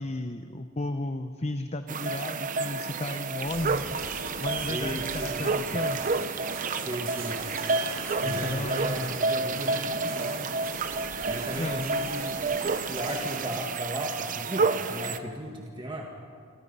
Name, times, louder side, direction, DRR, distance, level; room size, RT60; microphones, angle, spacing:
voice 1, 0.0-6.0 8.2-9.2 11.6-11.9, left 2 dB, 30° left, 8 dB, 0.8 m, -34 dB
sound 1, 1.9-15.2, right 4 dB, 40° right, 0.8 m, -30 dB
sound 2, 3.5-13.5, right 2 dB, 70° right, 4.3 m, -40 dB
voice 2, 4.7-5.4 6.7-7.4 8.2-10.5 11.2-12.4 12.9-16.1, equal, 25° right, 0 dB, 1.9 m, -36 dB
28.0 x 24.5 x 5.6 m, 2.2 s
head